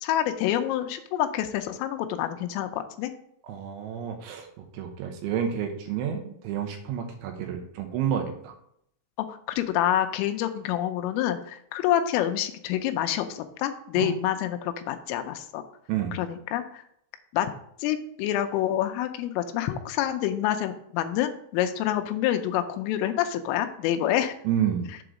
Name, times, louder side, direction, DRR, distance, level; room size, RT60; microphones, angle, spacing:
voice 1, 0.0-3.1 9.3-15.6 16.1-16.8 17.3-17.5 17.8-24.4, left 11 dB, 85° left, 8 dB, 3.2 m, -27 dB
voice 2, 3.5-4.5 4.7-8.5 14.0-14.1 15.9-16.2 24.4-24.9, right 9 dB, 80° right, 4 dB, 3.0 m, -29 dB
7.8 x 3.9 x 6.2 m, 0.70 s
omnidirectional pair, 5.9 m